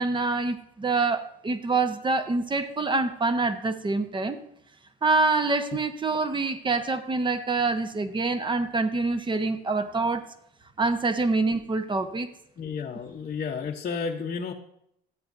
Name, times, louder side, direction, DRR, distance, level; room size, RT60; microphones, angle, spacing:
voice 1, 0.0-4.4 5.0-10.3 10.8-12.3, right 3 dB, 25° right, 9 dB, 1.0 m, -26 dB
voice 2, 12.6-14.5, left 5 dB, 40° left, -1 dB, 0.9 m, -32 dB
13.0 x 8.3 x 2.6 m, 0.74 s
supercardioid pair, 85°, 21 cm